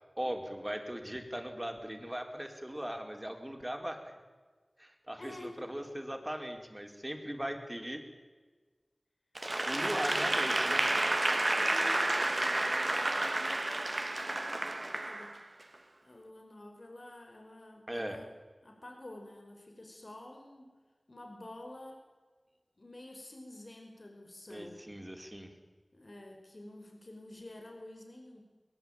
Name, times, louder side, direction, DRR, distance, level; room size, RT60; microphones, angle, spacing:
voice 1, 0.2-4.1 4.8-8.0 9.7-10.9 17.9-18.2 24.5-25.5, equal, 15° right, 5 dB, 4.6 m, -39 dB
voice 2, 5.2-5.7 9.6-11.0 11.6-15.3 16.0-18.3 18.6-20.7 21.1-22.0 22.8-24.8 25.9-28.4, left 1 dB, 60° left, 3 dB, 5.4 m, -49 dB
Applause / Crowd, 9.4-15.6, right 2 dB, 45° right, 1.4 m, -30 dB
23.0 x 21.5 x 9.0 m, 1.4 s
wide cardioid pair, 50°, 0 cm